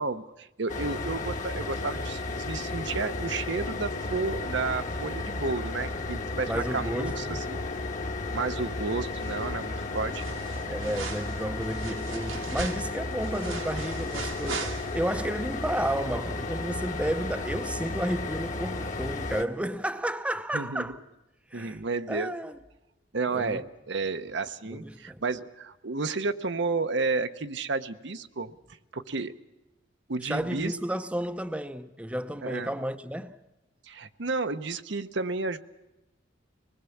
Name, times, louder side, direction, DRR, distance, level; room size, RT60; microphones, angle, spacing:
voice 1, 0.0-7.6 8.3-10.4 20.5-20.8 21.5-22.3 23.1-28.5 28.9-29.3 30.1-30.7 32.4-32.7 33.9-35.6, right 3 dB, 60° right, 0.9 m, -32 dB
sound 1, 0.7-19.4, left 2 dB, 40° left, 1.4 m, -33 dB
voice 2, 6.5-7.4 10.7-21.0 21.5-21.8 22.1-22.6 23.3-23.7 24.7-25.2 30.2-33.3, right 1 dB, 5° right, 0.7 m, -32 dB
sound 2, 9.2-9.7 9.9-15.3 15.6-15.7, right 5 dB, 85° right, 2.0 m, -40 dB
25.5 x 20.0 x 7.1 m
head